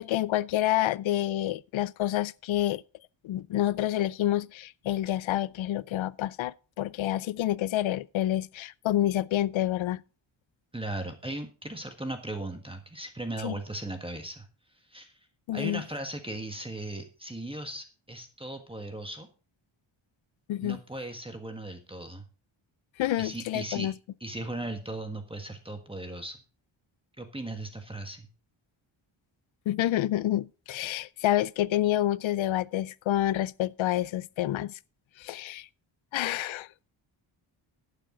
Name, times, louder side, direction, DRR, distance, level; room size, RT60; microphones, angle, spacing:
voice 1, 0.0-2.8 3.2-10.0 13.4-13.6 15.5-15.8 20.5-20.8 23.0-23.9 29.7-34.8 35.2-35.7 36.1-36.7, left 13 dB, 70° left, 0.6 m, -28 dB
voice 2, 10.7-14.5 14.7-15.2 15.5-19.3 20.6-22.2 23.2-23.9 24.2-26.4 27.2-28.3, right 1 dB, 10° right, 1.5 m, -37 dB
12.0 x 9.1 x 3.8 m
wide cardioid pair, 115°, 49 cm